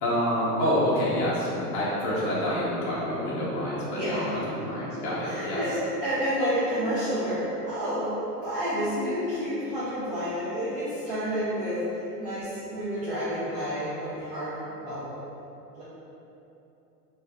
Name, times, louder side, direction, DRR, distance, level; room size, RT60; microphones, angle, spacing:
voice 1, 0.0-5.6, equal, 35° left, -9 dB, 0.8 m, -27 dB
voice 2, 3.9-4.3 5.2-8.2 8.4-14.6 14.8-15.1 15.8-15.9, equal, 30° right, -12 dB, 0.4 m, -29 dB
3.0 x 2.4 x 3.4 m, 3.0 s
supercardioid pair, 150°, 48 cm